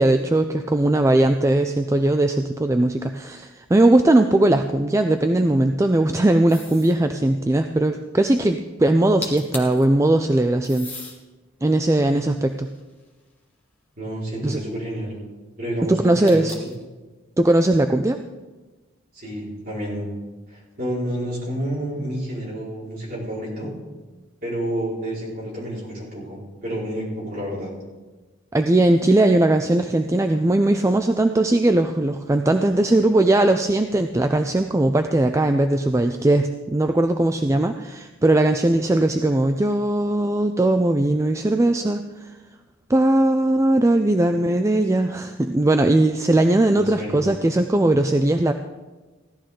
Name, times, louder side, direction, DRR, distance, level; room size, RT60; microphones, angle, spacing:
voice 1, 0.0-10.9 11.6-12.7 14.4-14.6 15.9-16.5 17.4-18.2 28.5-42.3 42.9-48.5, right 1 dB, 15° right, 7 dB, 0.3 m, -19 dB
sound 1, 6.5-7.0 8.9-9.0 9.2-9.8 10.6-11.2 11.8-13.3 16.3-16.8, left 3 dB, 10° left, 1.4 m, -37 dB
voice 2, 14.0-15.1 15.6-16.5 19.1-20.1 20.5-23.7 24.4-27.7 46.7-47.2, right 1 dB, 45° right, -6 dB, 4.9 m, -29 dB
16.5 x 12.0 x 3.8 m, 1.2 s
head